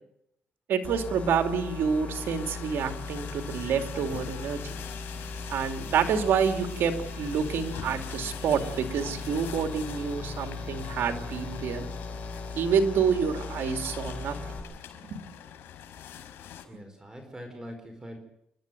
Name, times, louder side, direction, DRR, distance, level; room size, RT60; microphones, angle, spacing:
voice 1, 0.7-4.8 5.5-11.9 12.5-14.3 15.0-15.2, right 6 dB, 75° right, 6 dB, 2.8 m, -28 dB
sound 1, 0.8-14.6, left 3 dB, 40° left, 7.6 m, -38 dB
sound 2, 2.1-16.6, left 9 dB, 85° left, 5.0 m, -45 dB
sound 3, 4.0-12.1, right 2 dB, 45° right, 7.5 m, -52 dB
voice 2, 16.7-18.2, equal, 15° right, 5 dB, 4.7 m, -43 dB
29.5 x 12.0 x 9.2 m, 0.79 s
cardioid pair, 105°, 4 cm